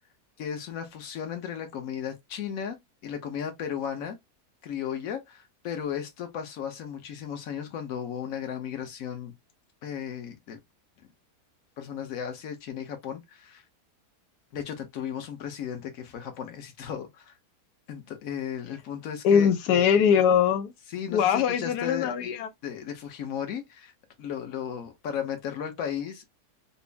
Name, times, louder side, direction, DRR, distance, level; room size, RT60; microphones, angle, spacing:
voice 1, 0.4-2.8 3.0-4.2 4.6-9.3 9.8-10.6 11.8-13.6 14.5-17.4 17.9-19.5 20.9-22.1 22.6-23.9 24.2-26.2, left 8 dB, 60° left, 1.3 m, -35 dB
voice 2, 19.2-20.7 21.1-22.5, left 7 dB, 90° left, 1.2 m, -22 dB
4.3 x 2.0 x 3.4 m
omnidirectional pair, 1.7 m